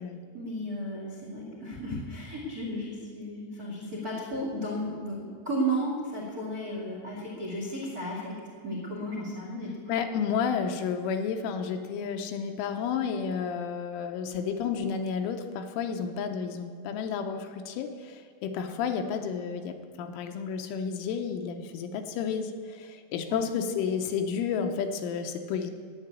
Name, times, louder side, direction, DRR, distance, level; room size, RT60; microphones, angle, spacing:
voice 1, 0.3-8.4 8.6-9.8 23.3-23.4, right 1 dB, 50° right, -2 dB, 1.1 m, -34 dB
voice 2, 9.9-25.7, left 6 dB, 80° left, 6 dB, 3.1 m, -31 dB
11.5 x 8.2 x 9.8 m, 2.1 s
omnidirectional pair, 5.9 m